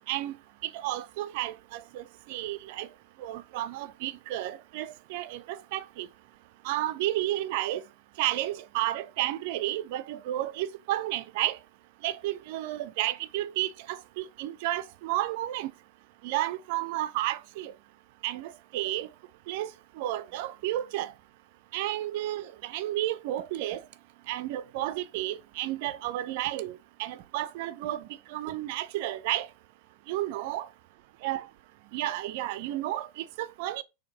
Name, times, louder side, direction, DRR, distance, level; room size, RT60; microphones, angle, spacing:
voice 1, 0.6-2.9 3.2-6.1 6.6-7.8 8.2-11.6 12.0-15.7 16.2-17.7 18.2-19.1 19.5-19.7 20.0-21.1 21.7-23.8 24.3-29.5 30.1-30.7 31.2-31.4 31.9-33.8, right 14 dB, 50° right, 0.3 m, -32 dB
4.3 x 2.6 x 2.8 m
figure-of-eight pair, 90°, 0 cm